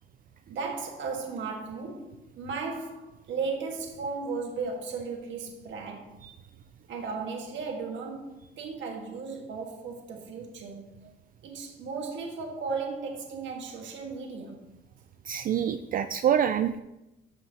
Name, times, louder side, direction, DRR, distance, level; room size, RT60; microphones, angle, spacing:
voice 1, 0.5-6.2 6.9-11.0 11.4-14.6, right 4 dB, 65° right, 1.6 m, -36 dB
voice 2, 15.3-16.8, right 9 dB, 45° right, 0.4 m, -26 dB
14.5 x 5.3 x 2.9 m
cardioid pair, 110°, 21 cm